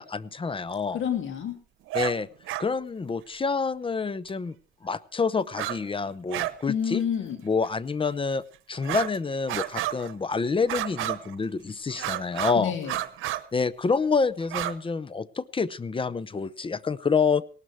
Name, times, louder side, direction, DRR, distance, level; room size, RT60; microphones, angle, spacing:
voice 1, 0.0-1.0 1.9-2.3 2.6-4.6 4.8-7.0 7.4-8.4 8.7-12.7 13.5-17.4, left 4 dB, 25° left, 19 dB, 0.7 m, -27 dB
voice 2, 0.9-1.6 6.7-7.4 12.5-12.9, left 8 dB, 75° left, 7 dB, 2.4 m, -28 dB
sound 1, 1.9-2.1 2.5-2.6 4.3-4.4 5.5-5.8 6.0-6.6 6.9-7.0 7.6-7.7 8.8-9.2 9.5-10.1 10.7-11.4 11.9-12.6 12.8-13.4 14.4-14.7, right 14 dB, 90° right, 1.0 m, -31 dB
18.0 x 12.5 x 4.6 m, 0.37 s
cardioid pair, 90°, 20 cm